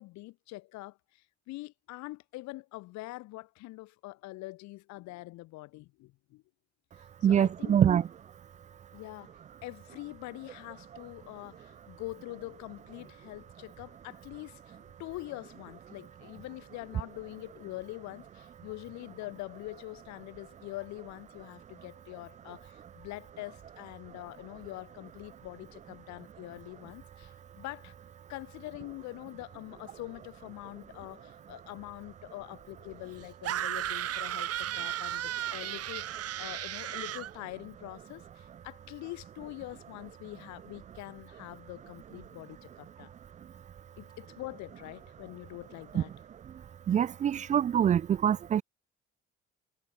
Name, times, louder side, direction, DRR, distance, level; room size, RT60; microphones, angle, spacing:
voice 1, 0.0-6.4 6.9-8.0 8.9-28.0 28.3-43.1 44.0-46.1, left 20 dB, 60° left, 1.5 m, -44 dB
voice 2, 7.2-8.0 45.9-46.0 46.9-48.6, right 9 dB, 25° right, 0.3 m, -24 dB
sound 1, 33.4-37.3, right 12 dB, 50° right, 1.5 m, -34 dB
figure-of-eight pair, 45°, 31 cm